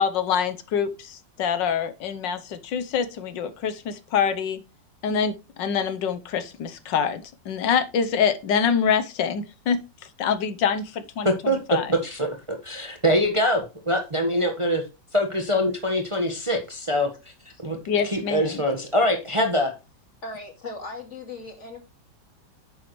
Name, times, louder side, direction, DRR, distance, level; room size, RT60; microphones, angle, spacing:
voice 1, 0.0-4.6 5.0-9.8 10.2-11.9 17.9-18.6, left 7 dB, 85° left, 11 dB, 1.6 m, -25 dB
voice 2, 11.2-14.8 15.1-17.1 17.6-17.8 18.0-19.7, equal, 20° right, 4 dB, 1.2 m, -24 dB
voice 3, 20.2-21.8, left 3 dB, 40° left, 3 dB, 2.6 m, -37 dB
9.5 x 7.1 x 3.1 m, 0.27 s
omnidirectional pair, 1.9 m